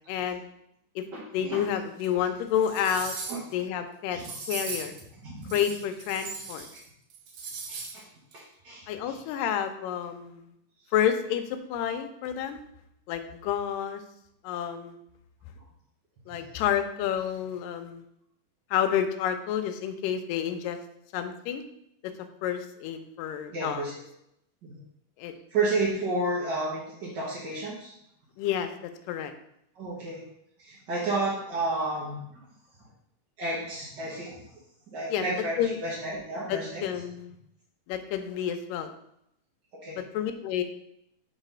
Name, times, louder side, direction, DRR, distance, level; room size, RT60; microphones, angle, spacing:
voice 1, 0.1-0.5 1.0-1.1 1.3-3.2 3.5-4.2 4.5-4.9 5.5-6.7 8.9-10.5 10.9-12.6 13.1-14.0 14.4-15.0 16.3-18.0 18.7-20.8 21.1-21.6 22.4-23.9 25.2-25.3 28.4-28.7 29.1-29.3 35.1-35.2 35.6-35.8 36.5-37.3 37.9-38.9 40.1-40.6, left 9 dB, 85° left, 7 dB, 2.3 m, -29 dB
voice 2, 1.1-1.6 3.3-3.4 4.1-4.3 5.2-5.5 6.5-6.6 7.7-8.0 8.3-8.8 23.5-23.9 24.7-24.8 25.5-27.9 29.7-30.2 30.6-32.2 33.4-34.3 34.9-36.8 39.8-40.0, right 2 dB, 50° right, -6 dB, 1.3 m, -31 dB
sound 1, 2.0-2.1 2.5-3.5 4.2-5.0 5.4-6.8 7.1-8.0 8.3-8.4, right 4 dB, 90° right, 2.8 m, -38 dB
5.6 x 4.0 x 5.6 m, 0.78 s
omnidirectional pair, 3.8 m